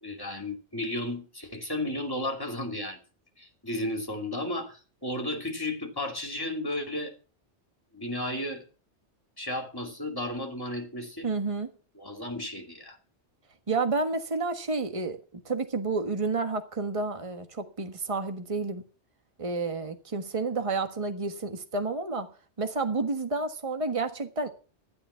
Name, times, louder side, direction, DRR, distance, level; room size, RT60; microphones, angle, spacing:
voice 1, 0.0-3.0 3.4-7.1 7.9-8.6 9.4-11.3 11.9-13.0, left 1 dB, 20° left, 2.7 m, -33 dB
voice 2, 11.2-11.7 13.7-18.8 19.4-22.3 22.6-24.5, right 3 dB, 30° right, 1.5 m, -30 dB
13.0 x 11.5 x 5.8 m
omnidirectional pair, 1.2 m